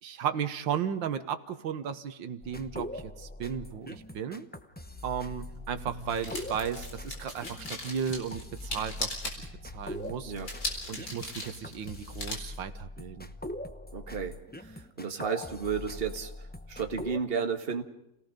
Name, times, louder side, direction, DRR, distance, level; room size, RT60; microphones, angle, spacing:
voice 1, 0.0-4.5 5.0-10.3 10.9-13.3, right 8 dB, 90° right, 10 dB, 1.9 m, -35 dB
sound 1, 2.4-17.2, left 1 dB, 10° left, 0.4 m, -42 dB
sound 2, 4.8-12.4, left 2 dB, 65° left, 4.8 m, -40 dB
voice 2, 13.9-14.4 14.6-16.3 16.7-17.8, right 6 dB, 35° right, 5 dB, 1.7 m, -32 dB
29.0 x 18.5 x 5.2 m, 0.84 s
omnidirectional pair, 2.0 m